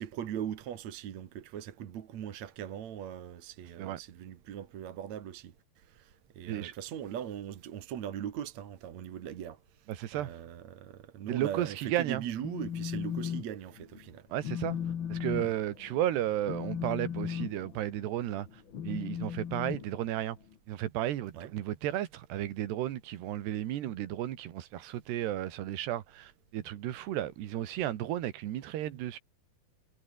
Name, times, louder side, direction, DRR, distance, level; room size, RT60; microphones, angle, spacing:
voice 1, 0.0-5.5 5.9-9.6 10.1-14.3 15.4-15.5 21.3-21.5, right 10 dB, 55° right, 2.4 m, -40 dB
voice 2, 9.9-10.3 11.3-12.2 14.3-14.8 15.1-18.5 18.8-20.4 20.7-29.2, right 12 dB, 90° right, 3.8 m, -33 dB
Telephone, 12.2-13.4 13.8-14.1 14.4-20.5, left 8 dB, 85° left, 1.0 m, -37 dB
omnidirectional pair, 4.6 m